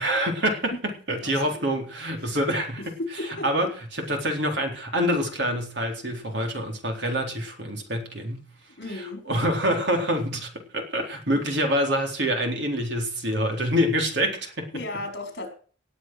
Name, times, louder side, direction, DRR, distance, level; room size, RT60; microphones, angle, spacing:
voice 1, 0.0-2.8 3.4-3.7 4.1-8.5 8.9-14.7, equal, 60° right, 3 dB, 3.9 m, -26 dB
voice 2, 1.2-1.6 2.2-2.3 2.8-3.7 8.8-9.2 14.7-15.5, left 2 dB, 55° left, 4 dB, 5.0 m, -35 dB
18.0 x 8.1 x 6.3 m, 0.41 s
head